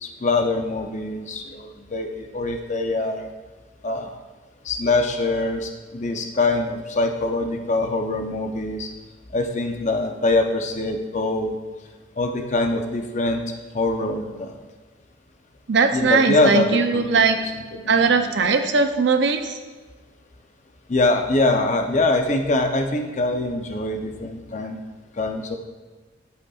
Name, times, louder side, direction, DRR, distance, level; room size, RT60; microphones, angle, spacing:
voice 1, 0.0-3.3 3.8-4.1 4.6-8.9 9.3-11.6 12.2-13.4 13.7-14.6 15.9-17.3 17.5-18.4 20.9-24.8 25.2-25.6, left 2 dB, 35° left, 4 dB, 0.6 m, -23 dB
voice 2, 15.7-17.4 17.9-19.6, right 4 dB, 60° right, 7 dB, 0.5 m, -19 dB
11.0 x 5.1 x 2.4 m, 1.4 s
head